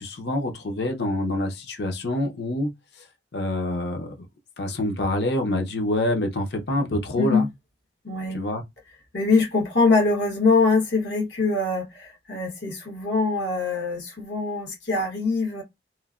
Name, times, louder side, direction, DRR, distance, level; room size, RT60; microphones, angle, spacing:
voice 1, 0.0-2.7 3.0-3.1 3.3-4.1 4.6-7.5 8.3-8.6, left 1 dB, 70° left, 0.6 m, -26 dB
voice 2, 7.2-7.5 8.0-8.4 9.1-15.6, left 3 dB, 90° left, 1.1 m, -23 dB
3.0 x 2.0 x 2.4 m
head